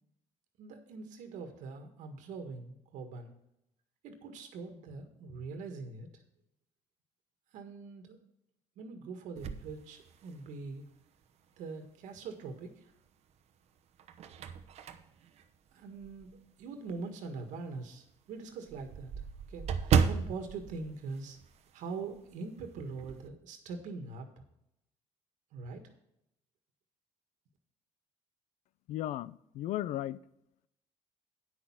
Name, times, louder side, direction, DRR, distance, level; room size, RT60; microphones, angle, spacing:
voice 1, 0.6-3.3 4.0-6.2 7.5-8.2 8.8-10.8 11.6-12.9 15.7-21.4 21.7-24.3 25.5-25.8, right 4 dB, 75° right, 1.6 m, -43 dB
sound 1, 9.4-10.7 11.2-11.3 12.8-13.3 13.8-16.4 16.9-17.0 17.4-17.5 17.8-17.9 18.1-21.9 22.1-22.4 22.7-23.3, right 7 dB, 55° right, 0.9 m, -34 dB
voice 2, 28.9-30.2, left 13 dB, 70° left, 0.5 m, -35 dB
9.5 x 6.4 x 5.8 m
cardioid pair, 120°, 13 cm